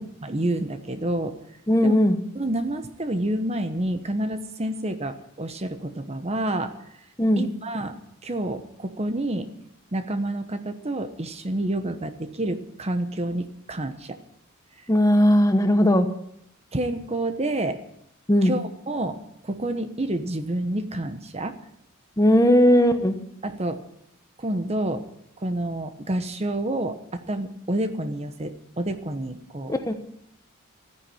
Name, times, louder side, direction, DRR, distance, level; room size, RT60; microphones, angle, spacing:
voice 1, 0.0-1.4 1.8-2.0 2.3-6.7 7.4-7.9 8.2-9.5 9.9-14.2 16.7-17.8 18.4-19.2 19.4-21.6 23.4-23.8 24.4-25.0 25.4-29.8, right 1 dB, 30° right, 9 dB, 1.1 m, -28 dB
voice 2, 1.7-2.2 7.2-7.4 14.9-16.1 18.3-18.5 22.2-23.2 29.7-29.9, equal, 15° left, 7 dB, 1.1 m, -18 dB
14.0 x 9.9 x 8.6 m, 0.74 s
head